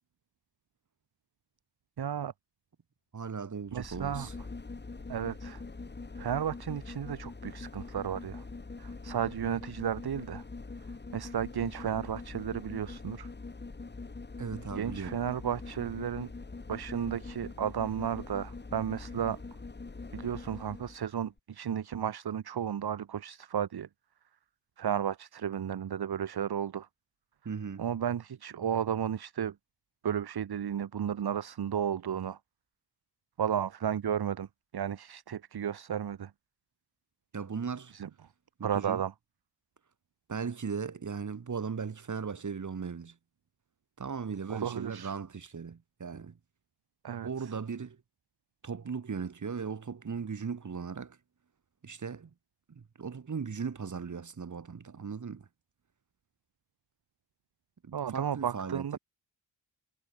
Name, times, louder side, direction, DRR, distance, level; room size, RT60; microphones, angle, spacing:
voice 1, 2.0-2.3 3.7-4.3 5.1-5.6 6.2-8.4 8.8-10.4 11.1-13.3 14.8-16.3 16.7-19.4 20.1-23.9 24.8-26.9 27.8-29.6 30.0-32.4 33.4-34.5 34.7-36.3 37.9-38.1 38.6-39.1 44.5-45.1 47.0-47.6 57.9-59.0, right 9 dB, 60° right, 2.2 m, -33 dB
voice 2, 3.1-4.3 14.4-15.2 27.4-27.9 37.3-37.9 38.6-39.0 40.3-43.2 44.0-46.4 47.2-48.0 48.6-51.2 51.8-52.3 52.7-55.5 57.8-59.0, right 6 dB, 40° right, 7.9 m, -37 dB
sound 1, 3.7-21.0 21.4-21.5, left 3 dB, 25° left, 6.0 m, -43 dB
wide cardioid pair, 160°, 43 cm